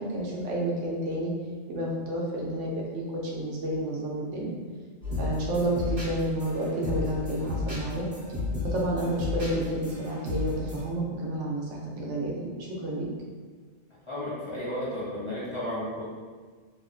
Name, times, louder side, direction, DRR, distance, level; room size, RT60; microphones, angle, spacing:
voice 1, 0.0-1.3 1.7-3.0 3.3-4.6 5.2-8.1 8.6-13.1, right 1 dB, 85° right, -3 dB, 0.9 m, -30 dB
sound 1, 5.0-10.8, left 3 dB, 50° right, 1.1 m, -33 dB
voice 2, 14.1-16.0, left 1 dB, 35° left, -10 dB, 0.5 m, -33 dB
2.9 x 2.0 x 2.4 m, 1.5 s
omnidirectional pair, 1.2 m